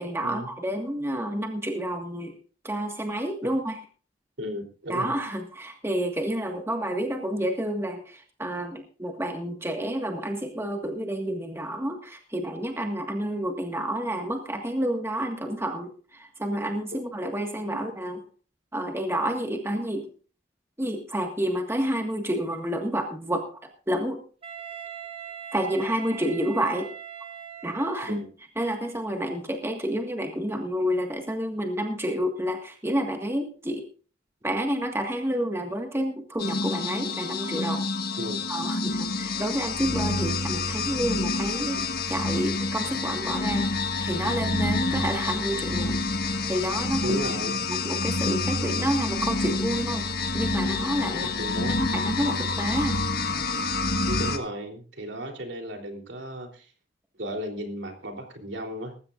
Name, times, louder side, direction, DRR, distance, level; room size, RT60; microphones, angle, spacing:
voice 1, 0.0-2.4 2.6-3.8 4.9-18.2 18.7-20.1 20.8-23.6 23.9-24.2 25.5-26.9 27.6-28.2 28.6-33.9 34.4-37.9 38.5-41.8 42.1-47.2 47.6-50.0 50.3-51.3 51.7-53.0, right 1 dB, 15° right, 3 dB, 1.7 m, -29 dB
voice 2, 4.4-5.1 28.1-28.3 38.2-38.5 47.0-47.6 51.4-51.8 54.0-56.7 57.2-58.9, equal, 70° right, 3 dB, 3.5 m, -34 dB
Wind instrument woodwind instrument, 24.4-28.3, right 8 dB, 30° right, 1.7 m, -41 dB
sound 1, 36.4-54.4, left 3 dB, 55° left, 1.6 m, -28 dB
20.0 x 15.0 x 2.5 m, 0.39 s
head